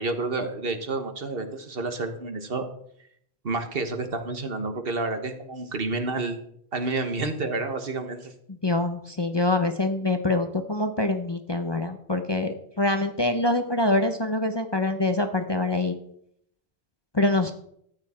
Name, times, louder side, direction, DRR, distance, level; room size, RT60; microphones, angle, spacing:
voice 1, 0.0-2.6 3.4-6.4 6.7-8.3, right 3 dB, 60° right, 7 dB, 1.5 m, -29 dB
voice 2, 8.6-15.9 17.1-17.5, left 2 dB, 25° left, 6 dB, 0.8 m, -25 dB
13.5 x 9.7 x 4.3 m, 0.70 s
omnidirectional pair, 1.1 m